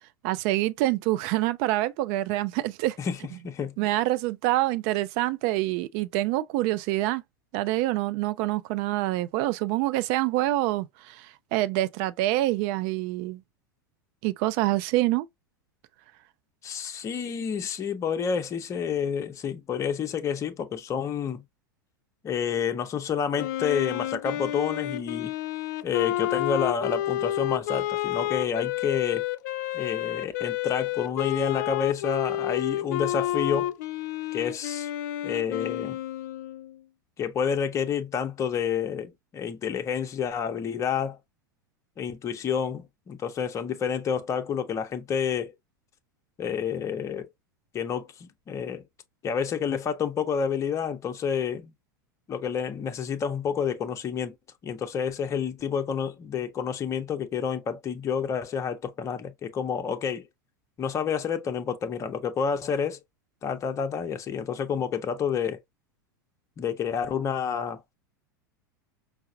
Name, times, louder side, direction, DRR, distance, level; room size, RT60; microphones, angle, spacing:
voice 1, 0.2-3.0 3.8-7.2 7.5-11.3 11.5-13.4 14.2-15.3, right 17 dB, 50° right, 0.4 m, -26 dB
voice 2, 3.4-3.8 16.6-21.4 22.2-25.3 25.8-29.2 29.7-33.7 34.3-34.9 35.2-36.0 37.2-41.2 42.0-45.5 46.4-47.3 47.7-48.8 49.2-51.7 52.3-54.3 54.6-60.2 60.8-63.0 63.4-65.6 66.6-67.8, left 7 dB, 25° left, 0.7 m, -29 dB
Wind instrument woodwind instrument, 23.4-36.8, left 13 dB, 55° left, 0.4 m, -30 dB
5.5 x 2.0 x 2.5 m
figure-of-eight pair, 90°, 11 cm